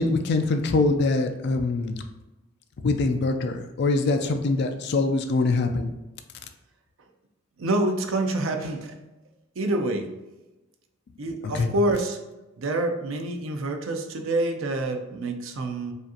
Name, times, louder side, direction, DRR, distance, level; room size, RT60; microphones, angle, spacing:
voice 1, 0.0-2.0 2.8-5.9 11.4-11.7, left 3 dB, 55° left, 5 dB, 0.4 m, -23 dB
voice 2, 7.6-9.0 9.6-10.1 11.2-12.2 12.6-15.9, right 2 dB, 75° right, 5 dB, 0.5 m, -27 dB
4.9 x 2.5 x 2.8 m, 1.0 s
head